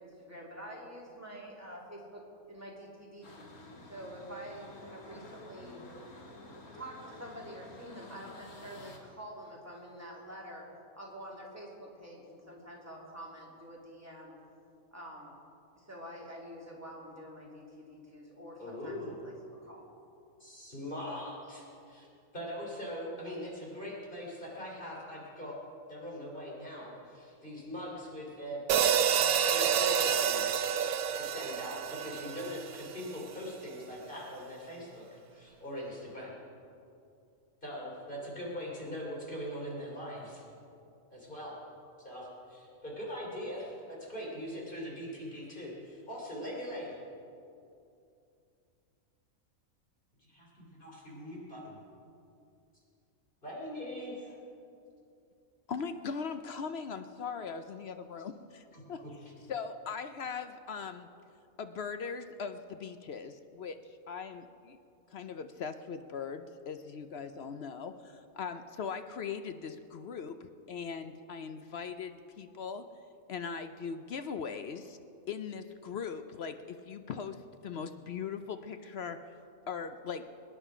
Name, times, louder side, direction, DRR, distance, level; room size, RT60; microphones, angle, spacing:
voice 1, 0.0-2.2 2.5-3.5 3.8-5.8 6.7-14.4 14.9-15.4 15.8-19.0 19.2-19.3 19.6-19.8, equal, 10° right, -4 dB, 2.7 m, -47 dB
sound 1, 3.2-9.0, left 2 dB, 90° left, 2.3 m, -50 dB
voice 2, 18.6-19.2 20.4-22.1 22.3-25.6 25.9-28.6 29.2-30.5 30.8-36.4 37.6-40.4 41.1-41.6 42.0-46.9 50.2-51.8 53.4-54.3 58.7-59.1, equal, 35° left, -4 dB, 3.5 m, -41 dB
sound 2, 28.7-33.1, right 8 dB, 85° right, 1.1 m, -28 dB
voice 3, 55.7-59.0 59.5-61.1 61.6-64.8 65.1-72.8 73.3-75.0 75.3-79.2 79.7-80.3, left 6 dB, 60° left, 9 dB, 0.8 m, -40 dB
23.5 x 9.9 x 5.0 m, 2.6 s
omnidirectional pair, 1.5 m